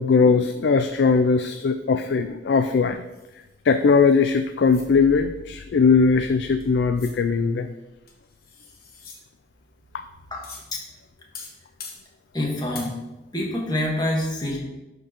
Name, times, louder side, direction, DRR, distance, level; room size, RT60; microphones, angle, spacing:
voice 1, 0.0-3.0 3.7-7.7, left 5 dB, 75° left, 8 dB, 0.4 m, -19 dB
sound 1, 3.1-4.9 6.6-6.7 7.0-7.2 8.1-9.2 10.4-10.7 11.3-12.0 12.7-12.9, left 5 dB, 55° left, 1.2 m, -43 dB
voice 2, 12.3-13.0 13.3-14.6, left 1 dB, 25° left, -2 dB, 1.5 m, -26 dB
11.5 x 4.5 x 3.0 m, 1.0 s
head